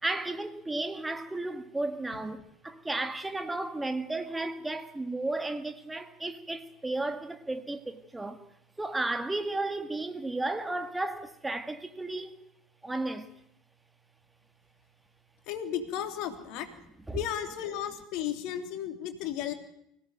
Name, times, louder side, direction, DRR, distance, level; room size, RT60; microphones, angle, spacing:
voice 1, 0.0-8.4 8.8-12.4 12.8-13.3 17.1-17.2, right 2 dB, 10° right, 2.0 m, -33 dB
voice 2, 15.5-16.7 17.1-19.5, left 10 dB, 60° left, 3.0 m, -34 dB
24.5 x 17.0 x 9.1 m
figure-of-eight pair, 65°, 0 cm